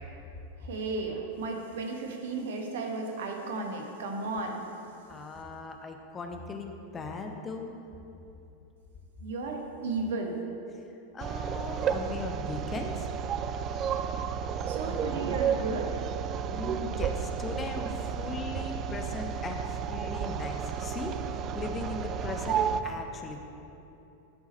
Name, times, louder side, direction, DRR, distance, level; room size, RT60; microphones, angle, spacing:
voice 1, 0.6-4.6 9.2-10.4 14.6-16.1, right 3 dB, 60° right, 2 dB, 1.1 m, -34 dB
voice 2, 5.1-7.8 11.1-13.1 16.5-21.2 21.5-23.4, left 3 dB, 20° left, 4 dB, 0.6 m, -38 dB
sound 1, 11.2-22.8, right 7 dB, 30° right, 0.3 m, -32 dB
11.0 x 4.8 x 4.2 m, 2.8 s
figure-of-eight pair, 90°, 0 cm